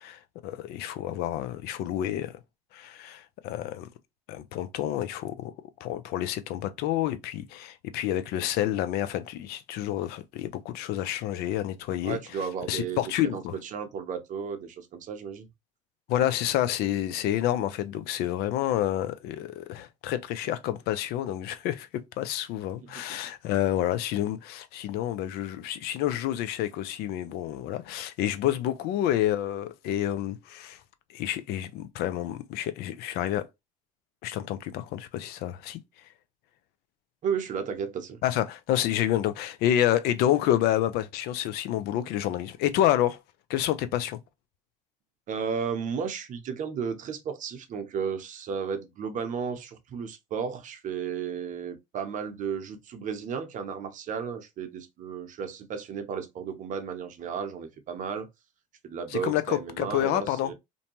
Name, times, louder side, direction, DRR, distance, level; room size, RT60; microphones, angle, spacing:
voice 1, 0.0-2.3 2.7-3.9 4.3-5.5 5.8-12.2 12.7-13.5 16.1-21.9 22.2-30.8 31.1-33.5 34.2-35.8 38.2-43.2 43.5-44.2 59.2-60.5, left 12 dB, 65° left, 0.5 m, -29 dB
voice 2, 12.0-15.5 22.8-23.0 37.2-38.2 45.3-58.3 58.8-60.5, right 6 dB, 45° right, 0.7 m, -34 dB
2.6 x 2.2 x 2.9 m
hypercardioid pair, 75°, 18 cm